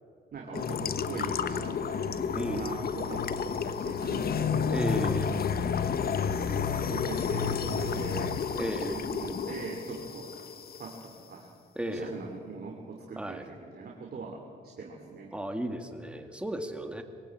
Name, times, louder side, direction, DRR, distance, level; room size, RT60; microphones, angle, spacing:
voice 1, 0.3-5.1 6.2-8.4 8.7-10.3 10.8-11.5 11.8-15.3, right 4 dB, 50° right, 0 dB, 2.9 m, -41 dB
sound 1, 0.5-11.0, left 6 dB, 50° left, 1.1 m, -31 dB
voice 2, 2.3-2.7 4.7-5.3 8.6-8.9 11.8-12.1 13.2-13.5 15.3-17.0, right 1 dB, 5° right, 5 dB, 2.2 m, -34 dB
22.5 x 17.5 x 8.7 m, 2.4 s
cardioid pair, 90°, 20 cm